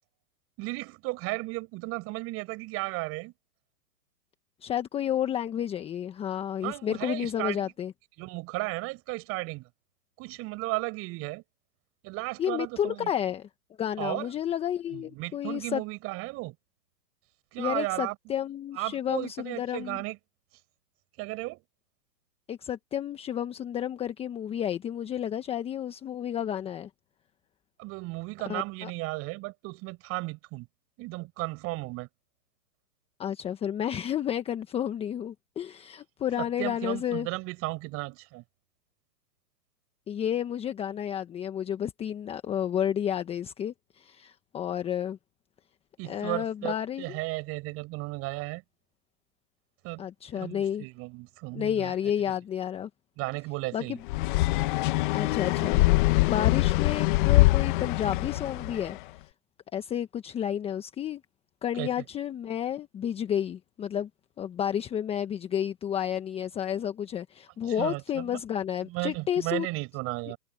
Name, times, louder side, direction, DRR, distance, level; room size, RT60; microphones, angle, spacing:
voice 1, 0.6-3.3 6.6-7.7 8.2-9.7 10.2-11.4 12.0-13.1 14.0-14.3 14.9-16.5 17.5-18.1 18.7-20.2 21.2-21.6 27.8-30.7 31.0-32.1 36.4-38.4 46.0-48.6 49.8-50.1 50.3-51.9 53.2-54.0 61.7-62.0 67.7-68.4 68.9-70.4, right 22 dB, 25° right, 6.3 m, -34 dB
voice 2, 4.6-7.9 12.4-13.5 13.8-15.8 17.6-20.0 22.5-26.9 28.5-28.9 33.2-37.3 40.1-45.2 46.0-47.2 50.0-50.8 51.5-52.9 53.7-54.0 55.1-55.8 56.3-59.0 59.7-61.2 61.6-64.1 64.4-69.7, left 9 dB, 10° left, 1.3 m, -31 dB
sound 1, 54.1-59.0, left 20 dB, 30° left, 1.2 m, -23 dB
hypercardioid pair, 140°, 49 cm